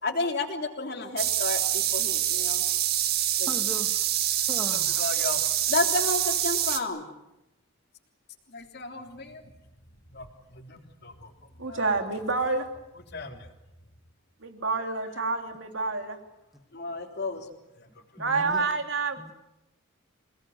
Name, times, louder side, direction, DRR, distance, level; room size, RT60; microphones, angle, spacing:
voice 1, 0.0-2.6 3.4-3.5 5.0-5.4 5.7-7.0 8.5-9.5 10.1-11.3 11.7-12.1 13.1-13.5 16.7-17.5 17.8-17.9, left 3 dB, 50° left, 3 dB, 3.4 m, -32 dB
sound 1, 1.2-6.8, right 11 dB, 50° right, 1.8 m, -26 dB
voice 2, 3.5-4.1 4.5-5.0 13.1-13.3 16.5-16.6 18.2-18.7 19.2-19.3, equal, ahead, 4 dB, 2.3 m, -39 dB
voice 3, 11.6-12.6 14.4-16.2 18.2-19.2, right 3 dB, 65° right, 5 dB, 3.3 m, -28 dB
28.5 x 18.5 x 9.5 m, 0.92 s
head